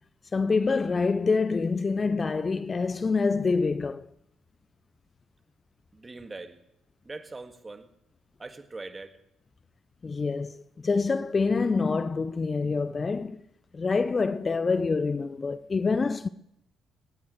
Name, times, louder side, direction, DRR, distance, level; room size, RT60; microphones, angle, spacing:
voice 1, 0.3-4.1 10.0-13.4 13.7-16.3, left 4 dB, 35° left, 0.5 m, -26 dB
voice 2, 5.9-6.6 7.0-7.9 8.4-9.2, right 3 dB, 25° right, 1.8 m, -41 dB
20.5 x 18.0 x 3.2 m
hypercardioid pair, 45°, 0 cm